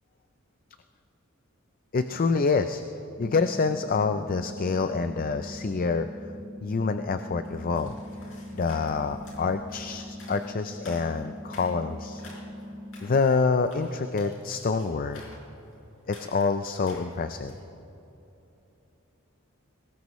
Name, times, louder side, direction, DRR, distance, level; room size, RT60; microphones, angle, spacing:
voice 1, 1.9-2.8 3.2-6.1 6.6-7.9 8.5-12.2 13.0-15.2 16.1-17.5, left 4 dB, 45° left, 9 dB, 0.5 m, -27 dB
sound 1, 3.2-13.2, equal, 10° left, 0.8 m, -42 dB
sound 2, 7.4-17.7, left 2 dB, 70° left, 4.7 m, -51 dB
23.0 x 19.0 x 3.1 m, 3.0 s
head